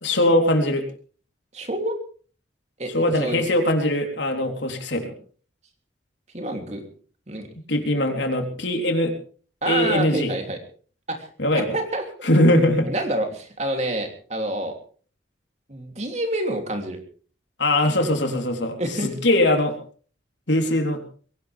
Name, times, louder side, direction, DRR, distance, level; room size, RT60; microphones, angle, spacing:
voice 1, 0.0-0.8 2.9-5.1 7.7-9.1 9.7-10.3 11.4-11.8 12.2-12.9 17.6-18.8 19.0-19.8 20.5-21.0, left 1 dB, 75° left, 4 dB, 3.7 m, -21 dB
voice 2, 1.5-2.0 2.8-3.4 6.3-6.8 7.3-7.5 9.6-10.6 11.1-12.0 12.8-14.7 15.7-17.0 18.8-19.1, right 1 dB, 35° right, 4 dB, 3.1 m, -28 dB
22.0 x 18.0 x 3.5 m, 0.43 s
head